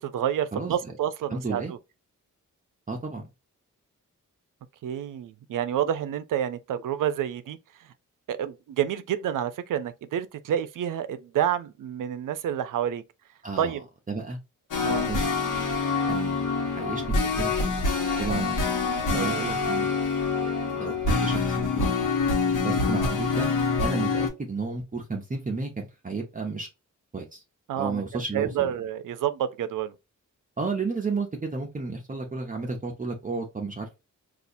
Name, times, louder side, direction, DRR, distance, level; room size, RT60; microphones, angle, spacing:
voice 1, 0.0-1.8 4.8-7.6 8.3-13.0 13.6-13.8 14.8-15.1 19.1-19.4 27.7-29.9, right 10 dB, 90° right, 0.5 m, -29 dB
voice 2, 0.5-0.9 1.3-1.7 2.9-3.2 13.4-13.8 14.1-14.4 14.9-15.2 16.1-16.5 16.7-17.0 17.4-17.8 18.2-18.6 19.0-19.9 20.4-22.0 22.6-26.7 27.1-27.4 27.8-28.7 30.6-34.0, right 4 dB, 25° right, 0.7 m, -32 dB
sound 1, 14.7-24.3, left 4 dB, 80° left, 1.1 m, -26 dB
4.1 x 2.4 x 2.5 m
cardioid pair, 90°, 31 cm